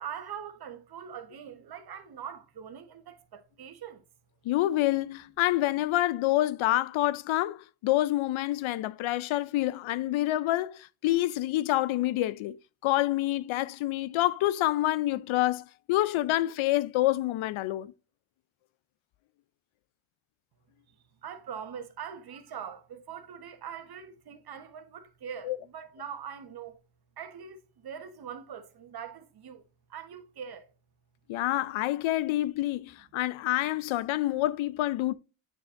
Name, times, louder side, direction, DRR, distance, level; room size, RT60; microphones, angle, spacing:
voice 1, 0.0-4.0 21.2-26.8 27.2-29.6 29.9-30.7, right 8 dB, 50° right, 1.2 m, -42 dB
voice 2, 4.4-17.9 25.4-25.6 31.3-35.1, left 15 dB, 75° left, 0.6 m, -27 dB
8.8 x 4.8 x 2.5 m
cardioid pair, 125°, 48 cm